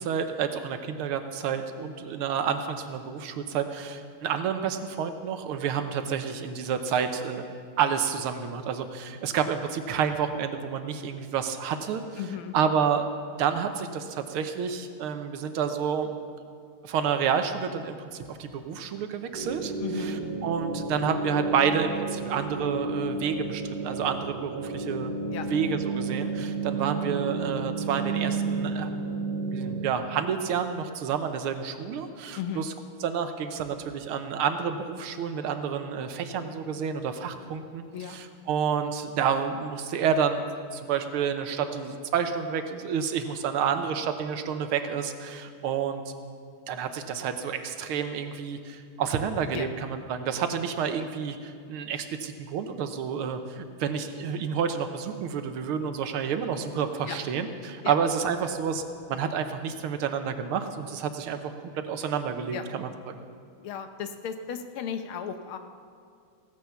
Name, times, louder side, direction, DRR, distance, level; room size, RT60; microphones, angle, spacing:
voice 1, 0.0-7.4 7.8-12.2 12.5-13.1 13.4-16.1 16.8-25.1 25.5-28.9 29.5-32.7 33.0-40.5 40.7-46.0 46.7-63.2, right 7 dB, 80° right, 8 dB, 1.8 m, -29 dB
voice 2, 12.2-12.5 19.8-20.2 25.3-25.5 32.3-32.7 37.9-38.2 49.5-49.7 57.1-57.2 57.8-58.0 62.5-62.6 63.6-65.6, left 8 dB, 75° left, 8 dB, 1.7 m, -35 dB
sound 1, 19.3-29.9, right 3 dB, 25° right, 1.2 m, -32 dB
16.0 x 9.7 x 7.0 m, 2.4 s
omnidirectional pair, 2.4 m